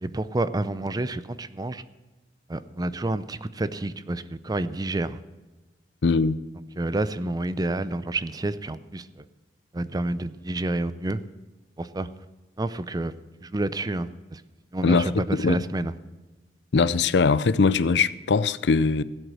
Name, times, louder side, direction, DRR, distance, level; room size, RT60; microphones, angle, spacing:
voice 1, 0.0-1.8 2.5-5.2 6.8-9.2 9.7-11.2 11.8-12.1 12.6-13.1 13.4-14.4 14.7-15.9, right 2 dB, 20° right, 15 dB, 0.5 m, -29 dB
voice 2, 6.0-6.4 14.8-15.6 16.7-19.0, left 4 dB, 75° left, 17 dB, 0.5 m, -21 dB
16.5 x 8.0 x 6.3 m, 1.2 s
head